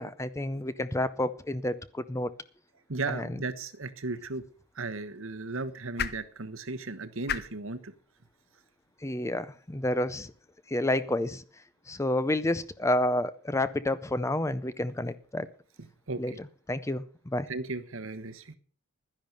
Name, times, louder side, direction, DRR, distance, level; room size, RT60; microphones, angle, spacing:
voice 1, 0.0-2.3 3.1-3.4 9.0-10.3 10.7-11.4 11.9-15.5 16.2-16.3 16.7-17.5, left 1 dB, 15° left, 0.5 m, -29 dB
voice 2, 2.9-4.4 4.7-7.9 16.1-16.2 17.5-18.5, right 3 dB, 65° right, 1.2 m, -35 dB
sound 1, 4.2-10.4, left 7 dB, 45° left, 0.9 m, -42 dB
12.0 x 10.5 x 6.6 m
head